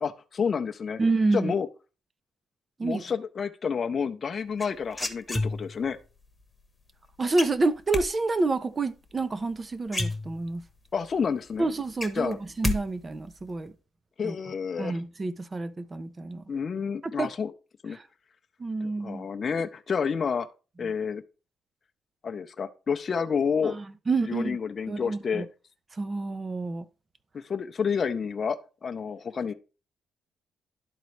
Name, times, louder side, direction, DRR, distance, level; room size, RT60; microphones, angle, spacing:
voice 1, 0.0-1.0 1.3-1.7 2.8-6.0 10.9-11.7 12.2-12.4 14.2-15.0 16.5-17.5 17.8-18.0 19.0-20.5 20.8-21.2 22.2-23.8 24.3-25.4 27.3-29.5, left 6 dB, 40° left, 0.6 m, -29 dB
voice 2, 1.0-1.5 2.8-3.0 7.2-10.6 11.6-13.7 14.2-14.4 14.8-16.4 17.0-17.3 17.9-18.0 18.6-19.3 23.6-24.6 24.9-25.5 26.0-26.9, right 3 dB, 30° right, 0.6 m, -28 dB
sound 1, 4.6-5.9 7.4-8.0 9.5-9.6 9.9-10.7 11.1-11.2 11.5-12.8 13.0-13.5, left 2 dB, 10° left, 1.1 m, -30 dB
11.5 x 4.0 x 3.2 m
cardioid pair, 90°, 0 cm